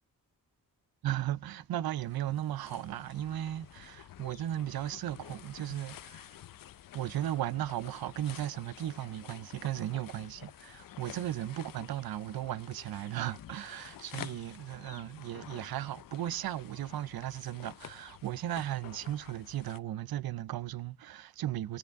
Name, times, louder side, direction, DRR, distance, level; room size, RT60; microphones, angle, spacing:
voice 1, 1.0-6.4 6.9-21.8, right 12 dB, 75° right, 0.6 m, -36 dB
sound 1, 1.8-19.8, left 12 dB, 65° left, 0.5 m, -50 dB
18.0 x 8.1 x 4.6 m
wide cardioid pair, 105°, 36 cm